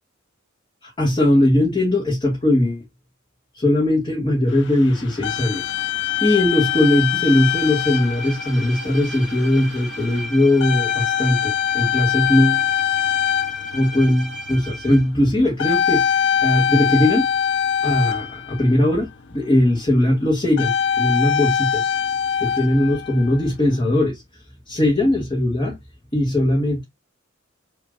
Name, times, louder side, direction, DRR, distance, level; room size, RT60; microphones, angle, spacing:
voice 1, 0.8-2.8 3.5-5.6 6.2-12.6 13.7-17.3 17.8-21.9 22.4-24.2 24.7-25.8 26.1-26.8, left 1 dB, 25° left, 1.7 m, -19 dB
sound 1, 4.5-19.0 20.5-23.8, left 9 dB, 60° left, 0.6 m, -23 dB
Bowed string instrument, 6.5-15.1, equal, ahead, 2.4 m, -36 dB
6.4 x 3.3 x 2.5 m
head